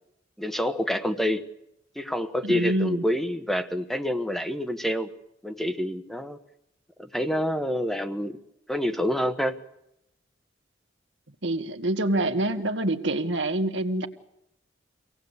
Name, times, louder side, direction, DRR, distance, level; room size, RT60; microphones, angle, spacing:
voice 1, 0.4-1.5 1.9-5.1 5.4-6.4 7.0-8.4 8.7-9.6, equal, ahead, 8 dB, 1.1 m, -27 dB
voice 2, 2.4-3.0 11.4-14.1, right 1 dB, 80° right, 6 dB, 1.8 m, -26 dB
25.0 x 18.0 x 8.2 m, 0.82 s
head